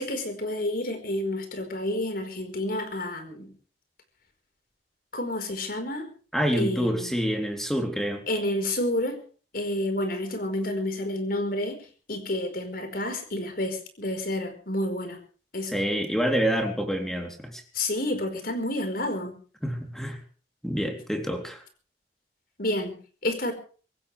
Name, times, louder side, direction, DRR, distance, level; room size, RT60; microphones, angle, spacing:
voice 1, 0.0-3.5 5.1-6.1 6.6-7.2 8.3-9.2 9.5-15.2 15.5-15.8 17.7-19.3 22.6-22.9 23.2-23.5, left 1 dB, 55° left, 7 dB, 4.8 m, -29 dB
voice 2, 6.3-8.2 15.7-17.6 19.6-20.2 20.6-21.6, equal, ahead, 3 dB, 3.5 m, -27 dB
25.0 x 15.5 x 3.5 m, 0.39 s
head